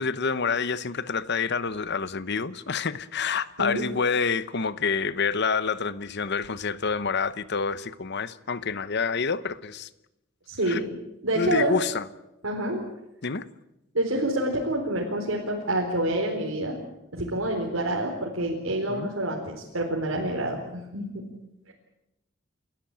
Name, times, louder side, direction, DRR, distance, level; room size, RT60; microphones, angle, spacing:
voice 1, 0.0-9.9 10.6-10.8 11.3-12.1 13.2-13.5 18.9-19.1, left 5 dB, 55° left, 1.0 m, -28 dB
voice 2, 10.5-10.8 11.2-11.8 12.4-12.8 13.9-16.8 17.1-21.2 21.7-21.8, right 1 dB, 85° right, 4.2 m, -27 dB
29.5 x 13.5 x 8.9 m
head